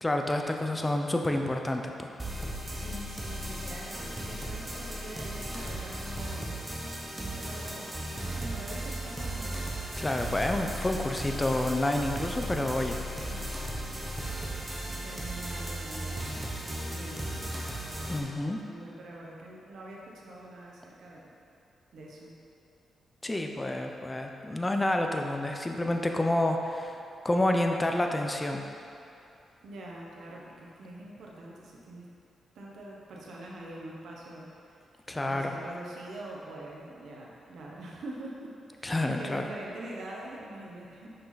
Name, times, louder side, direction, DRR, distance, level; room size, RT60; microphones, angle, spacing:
voice 1, 0.0-2.1 10.0-13.0 13.3-13.5 18.1-18.6 23.2-28.6 35.1-35.5 38.8-39.5, left 1 dB, 15° left, 3 dB, 0.6 m, -29 dB
sound 1, 2.2-18.2, right 1 dB, 15° right, 1.1 m, -36 dB
voice 2, 2.7-6.5 7.1-9.6 15.0-17.3 18.6-21.3 21.9-22.3 29.6-32.1 32.5-34.7 35.3-41.1, right 1 dB, 75° right, -3 dB, 1.1 m, -44 dB
6.2 x 5.6 x 4.1 m, 2.6 s
cardioid pair, 90°, 0 cm